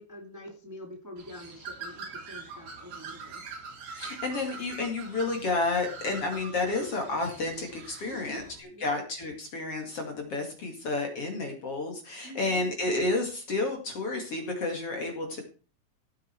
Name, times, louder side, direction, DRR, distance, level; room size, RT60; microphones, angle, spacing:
voice 1, 0.0-3.4 8.0-8.4 8.7-9.0 12.2-12.6 15.2-15.4, left 1 dB, 5° right, 2 dB, 1.6 m, -45 dB
Bird, 1.2-8.6, right 5 dB, 80° right, 5.6 m, -44 dB
voice 2, 3.9-15.4, left 3 dB, 40° left, 3 dB, 2.7 m, -31 dB
15.5 x 9.2 x 4.5 m, 0.36 s
omnidirectional pair, 4.7 m